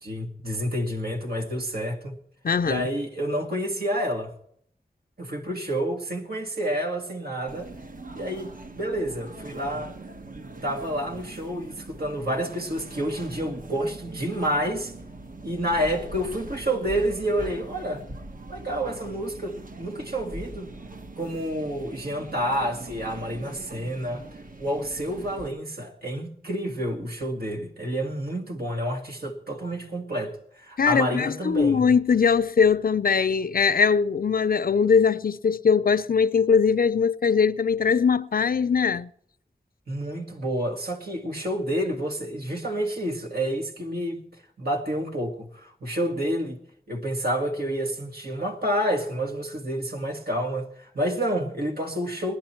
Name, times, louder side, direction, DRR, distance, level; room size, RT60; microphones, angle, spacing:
voice 1, 0.0-2.1 2.6-4.3 5.2-7.7 8.1-9.9 10.6-14.9 15.4-18.0 18.5-20.7 21.2-24.2 24.6-31.8 39.9-44.2 44.6-46.6 46.9-52.4, equal, 75° right, 2.1 m, -29 dB
voice 2, 2.4-2.9 30.8-39.1, left 6 dB, 65° left, 0.5 m, -21 dB
sound 1, 7.5-25.5, right 2 dB, 60° right, 1.1 m, -42 dB
20.0 x 11.0 x 4.4 m
wide cardioid pair, 70°, 16 cm